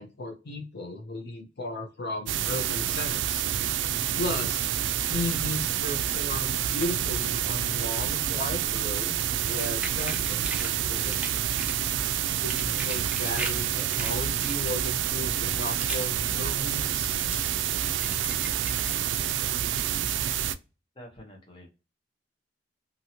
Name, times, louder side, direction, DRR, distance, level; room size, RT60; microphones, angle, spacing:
voice 1, 0.0-3.5 4.2-4.7 5.1-11.5 12.4-17.2, left 2 dB, 60° left, 2 dB, 0.6 m, -35 dB
sound 1, 2.3-20.6, right 10 dB, 80° right, 0.3 m, -28 dB
sound 2, 9.4-10.7 11.1-11.9 12.2-13.6 13.9-14.8 15.3-16.1 16.4-19.0 19.3-20.2, right 2 dB, 5° right, 0.4 m, -39 dB
voice 2, 20.9-21.7, left 1 dB, 30° left, 0 dB, 0.9 m, -47 dB
2.8 x 2.7 x 2.7 m, 0.31 s
head